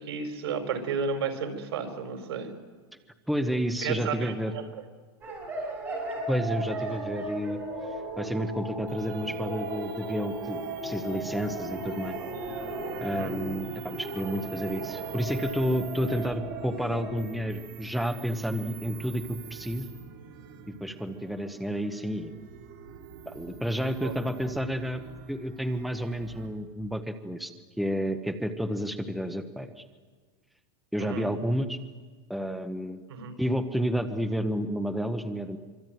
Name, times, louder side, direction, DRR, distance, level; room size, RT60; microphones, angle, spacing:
voice 1, 0.0-2.5 3.8-4.6 13.1-13.4 24.0-24.1 31.0-31.3 33.1-33.4, right 5 dB, 90° right, 7 dB, 5.2 m, -32 dB
voice 2, 3.3-4.5 6.3-7.6 8.2-12.2 13.0-19.9 20.8-22.3 23.3-25.0 25.3-27.5 27.8-29.8 30.9-31.8 32.3-33.0 33.4-35.6, equal, ahead, 8 dB, 0.9 m, -30 dB
sound 1, 5.2-17.1, right 1 dB, 15° right, 6.5 m, -36 dB
sound 2, 8.9-26.5, right 7 dB, 55° right, 3.9 m, -44 dB
25.0 x 25.0 x 9.2 m, 1.5 s
supercardioid pair, 175°, 13 cm